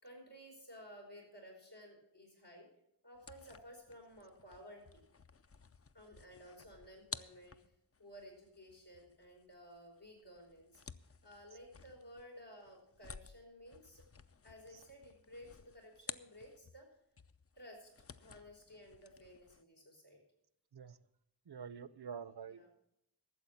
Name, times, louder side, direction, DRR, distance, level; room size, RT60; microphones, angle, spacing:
voice 1, 0.0-2.7 3.0-4.8 5.9-7.6 8.0-10.8 11.2-14.0 14.4-16.9 17.5-17.9 18.2-20.2 22.5-22.7, equal, 80° left, 0 dB, 4.8 m, -55 dB
sound 1, 3.2-16.9 17.2-19.6, left 5 dB, 35° left, 0.5 m, -54 dB
voice 2, 21.5-22.7, right 6 dB, 70° right, 16 dB, 0.6 m, -47 dB
13.0 x 7.5 x 7.1 m, 0.79 s
wide cardioid pair, 55°, 41 cm